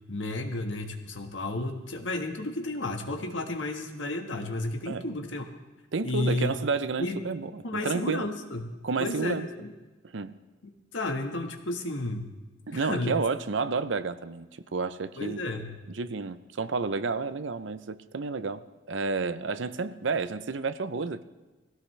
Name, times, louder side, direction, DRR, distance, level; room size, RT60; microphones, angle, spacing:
voice 1, 0.1-5.5 6.0-6.5 7.0-7.2 7.6-8.7 9.0-9.7 10.9-12.3 12.7-13.2 15.2-15.7, left 2 dB, 85° left, 4 dB, 1.6 m, -32 dB
voice 2, 5.9-8.3 8.8-9.5 10.1-10.4 12.7-15.4 15.9-21.2, right 4 dB, 85° right, 13 dB, 0.7 m, -31 dB
19.5 x 16.5 x 3.3 m, 1.2 s
head